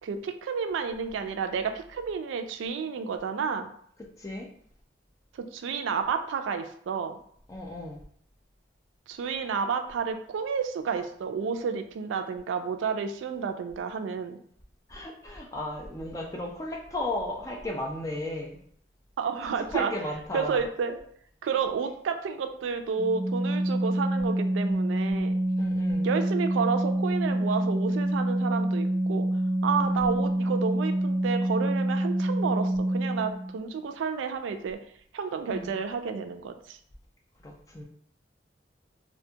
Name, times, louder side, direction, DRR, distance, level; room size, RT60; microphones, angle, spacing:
voice 1, 0.0-3.7 5.3-7.2 9.1-14.4 19.2-19.9 20.3-21.0 21.4-25.3 26.0-29.3 29.6-34.8 35.1-36.8, right 6 dB, 90° right, 8 dB, 0.3 m, -30 dB
voice 2, 7.5-8.0 14.9-18.6 19.6-20.6 25.6-26.1 29.7-30.3 35.5-35.7 37.4-37.8, left 1 dB, 15° left, 0 dB, 0.4 m, -35 dB
Organ, 23.0-33.5, right 1 dB, 30° right, 0.8 m, -27 dB
2.5 x 2.2 x 2.7 m, 0.62 s
head